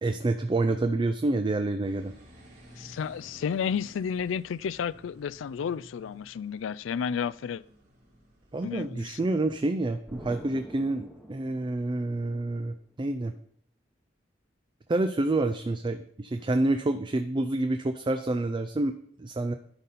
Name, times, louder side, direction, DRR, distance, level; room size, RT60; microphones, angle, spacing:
voice 1, 0.0-2.1 8.5-13.3 14.9-19.5, right 2 dB, 25° right, 0.4 m, -28 dB
sound 1, 1.8-9.9, equal, 40° right, 2.9 m, -54 dB
voice 2, 2.8-7.6 8.6-9.2, left 7 dB, 75° left, 0.3 m, -32 dB
Explosion, 10.1-12.7, equal, 5° right, 1.1 m, -46 dB
11.5 x 4.1 x 5.4 m
head